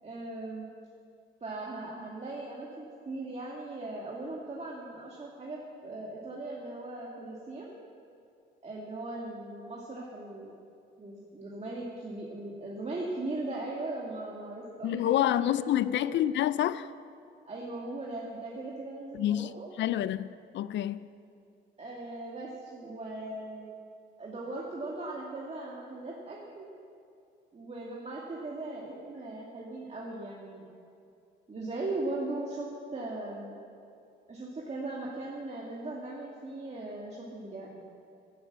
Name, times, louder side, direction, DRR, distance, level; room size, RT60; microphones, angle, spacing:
voice 1, 0.0-0.7 1.4-7.7 8.6-10.5 11.0-16.1 17.5-19.7 21.8-23.8 24.2-26.7 27.5-30.7 31.5-33.6 34.3-37.8, right 2 dB, 35° right, 2.0 m, -39 dB
voice 2, 14.8-16.9 19.1-19.5 19.8-21.0, left 12 dB, 65° left, 0.4 m, -28 dB
11.0 x 10.0 x 7.5 m
cardioid pair, 90°, 20 cm